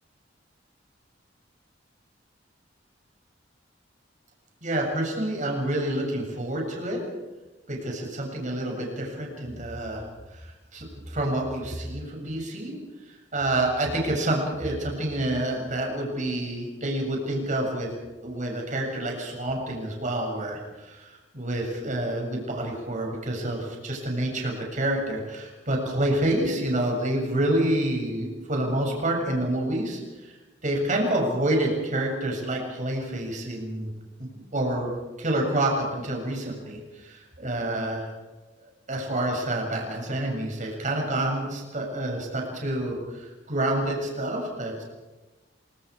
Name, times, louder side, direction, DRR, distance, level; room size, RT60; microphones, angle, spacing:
voice 1, 4.6-7.0 7.7-10.0 10.3-12.7 13.3-17.9 18.2-30.4 30.6-33.9 34.5-34.9 35.2-38.1 38.9-44.8, right 1 dB, 45° right, 0 dB, 7.3 m, -28 dB
28.5 x 26.0 x 4.9 m, 1.2 s
head